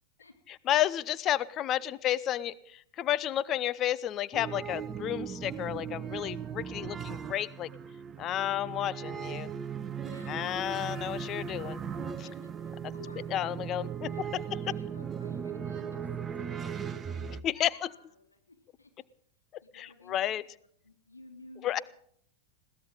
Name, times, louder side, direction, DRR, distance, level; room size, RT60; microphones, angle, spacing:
voice 1, 0.7-7.7 8.2-9.5 10.3-11.8 12.2-12.3 13.3-14.4 17.4-17.9 19.7-20.4 21.6-21.8, left 12 dB, 30° left, 18 dB, 0.7 m, -31 dB
sound 1, 4.3-17.4, right 7 dB, 20° right, 0.9 m, -38 dB
voice 2, 10.0-10.8 12.2-13.5 14.0-18.9 19.6-20.5 20.8-21.8, left 2 dB, 80° left, 2 dB, 3.4 m, -55 dB
21.5 x 17.0 x 3.9 m, 0.65 s
figure-of-eight pair, 90°, 0 cm